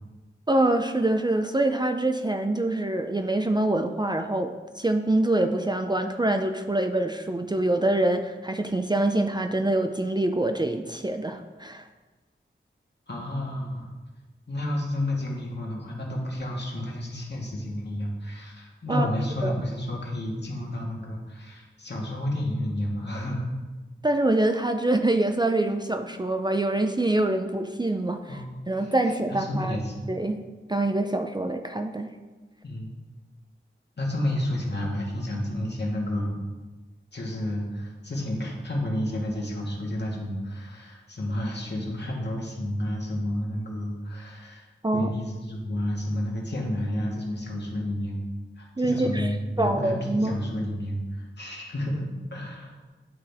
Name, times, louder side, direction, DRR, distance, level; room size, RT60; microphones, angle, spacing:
voice 1, 0.5-11.9 18.9-19.1 19.4-19.5 24.0-28.4 28.7-29.8 30.1-30.4 30.7-32.1 44.8-45.1 48.8-50.4, right 2 dB, 20° right, 6 dB, 0.4 m, -25 dB
voice 2, 13.1-13.9 14.5-23.5 28.3-28.5 29.3-30.1 32.6-32.9 34.0-36.4 37.1-44.7 44.9-48.2 48.6-52.9, left 1 dB, 55° left, -2 dB, 1.8 m, -30 dB
10.5 x 3.9 x 3.5 m, 1.3 s
wide cardioid pair, 55°, 21 cm